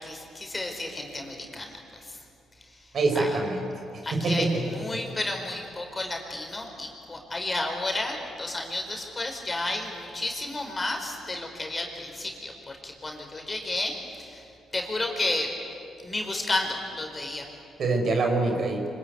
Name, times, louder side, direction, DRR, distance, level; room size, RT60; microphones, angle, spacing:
voice 1, 0.0-2.2 2.6-3.4 4.0-15.5 16.0-17.5, left 2 dB, 25° left, 2 dB, 4.9 m, -32 dB
voice 2, 2.9-3.7 4.1-4.6 17.8-18.8, right 3 dB, 55° right, 3 dB, 5.1 m, -25 dB
25.5 x 24.5 x 9.6 m, 2.6 s
cardioid pair, 90°, 0 cm